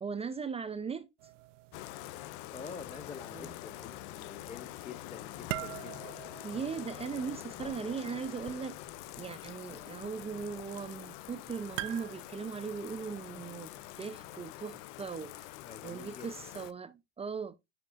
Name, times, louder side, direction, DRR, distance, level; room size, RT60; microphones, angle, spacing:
voice 1, 0.0-1.1 3.3-3.5 6.4-8.8 9.2-15.6 15.8-17.6, right 6 dB, 15° right, 0.6 m, -39 dB
sound 1, 1.2-14.4, right 17 dB, 80° right, 0.6 m, -48 dB
Bathtub (filling or washing), 1.7-16.7, left 17 dB, 55° left, 0.6 m, -46 dB
voice 2, 2.5-6.2 15.6-16.3, left 5 dB, 20° left, 1.3 m, -47 dB
9.5 x 5.1 x 2.5 m
hypercardioid pair, 100°, 36 cm